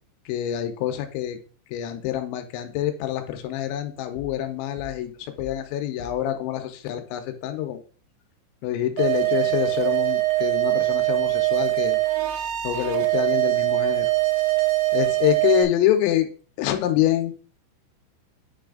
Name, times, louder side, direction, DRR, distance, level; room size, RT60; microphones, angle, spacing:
voice 1, 0.3-1.4 1.7-7.8 8.6-12.0 12.6-14.1 14.9-16.3 16.6-17.3, left 12 dB, 90° left, 6 dB, 3.0 m, -26 dB
sound 1, 4.2-4.5 4.8-5.7 6.0-6.4, left 4 dB, 70° left, 1.9 m, -44 dB
sound 2, 9.0-15.6, right 19 dB, 80° right, 2.7 m, -22 dB
9.2 x 3.3 x 3.7 m, 0.39 s
omnidirectional pair, 5.3 m